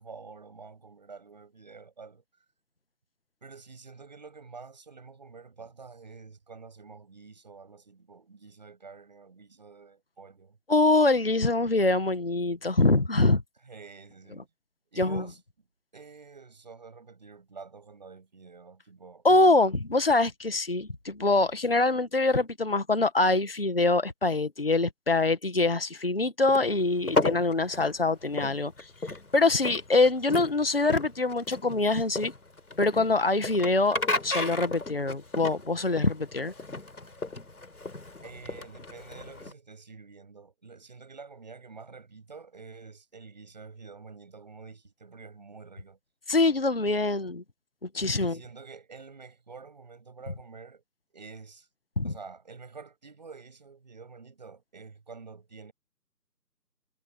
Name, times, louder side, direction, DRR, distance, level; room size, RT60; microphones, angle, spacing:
voice 1, 0.0-2.2 3.4-10.6 13.6-14.5 14.9-15.4 15.9-19.2 38.2-46.0 48.2-50.8 51.1-51.7 52.0-55.7, right 4 dB, 25° right, 7.3 m, -48 dB
voice 2, 10.7-13.4 15.0-15.2 19.2-28.9 29.3-32.3 32.8-36.5 46.3-47.4 47.9-48.4 52.0-52.1, left 2 dB, 35° left, 1.8 m, -24 dB
sound 1, 26.5-39.5, left 2 dB, 60° left, 4.5 m, -34 dB
figure-of-eight pair, 175°, 50 cm